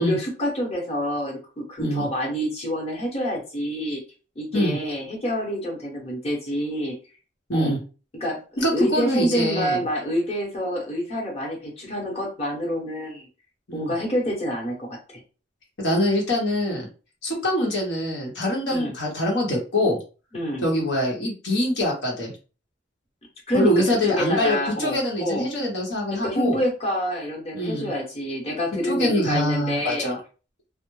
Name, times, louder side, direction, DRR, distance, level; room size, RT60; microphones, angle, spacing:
voice 1, 0.0-4.0 4.4-7.0 7.5-7.7 8.1-13.3 13.7-15.2 18.7-18.9 20.3-20.7 23.5-25.5 26.1-30.1, equal, 35° left, -2 dB, 0.9 m, -27 dB
voice 2, 8.6-9.8 13.7-13.9 15.8-16.9 17.2-20.0 20.6-22.3 23.5-26.6 27.5-27.9 28.9-30.2, left 1 dB, 70° left, -2 dB, 0.9 m, -24 dB
2.1 x 2.0 x 3.0 m, 0.34 s
head